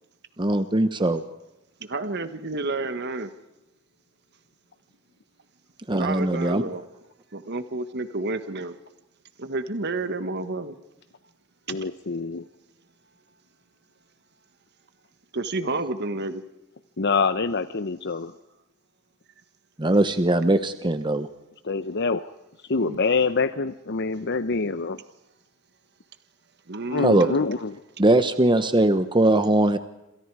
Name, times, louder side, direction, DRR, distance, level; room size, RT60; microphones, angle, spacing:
voice 1, 0.4-1.2 5.9-6.6 19.8-21.3 27.0-27.3 28.0-29.8, right 1 dB, 25° right, 10 dB, 1.0 m, -20 dB
voice 2, 1.9-3.3 5.9-6.8 7.3-8.7 9.4-10.7 15.3-16.4 22.8-23.0 26.7-27.4, right 2 dB, 55° right, 10 dB, 1.5 m, -30 dB
voice 3, 11.7-12.4 17.0-18.3 21.6-22.3 22.7-25.0 26.9-27.7, left 4 dB, 55° left, 11 dB, 0.9 m, -25 dB
28.0 x 28.0 x 4.8 m, 0.95 s
head